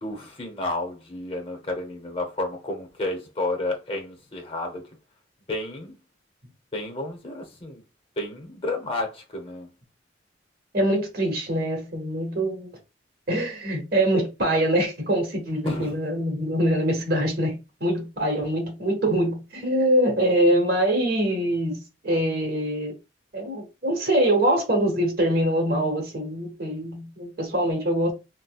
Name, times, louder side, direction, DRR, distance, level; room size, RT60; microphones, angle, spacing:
voice 1, 0.0-4.8 5.5-5.9 6.7-7.8 8.2-9.7 15.6-16.0, left 2 dB, 30° left, 0.8 m, -31 dB
voice 2, 10.7-12.7 13.3-22.9 23.3-28.1, right 1 dB, 55° right, 1.4 m, -24 dB
4.0 x 2.1 x 2.3 m
head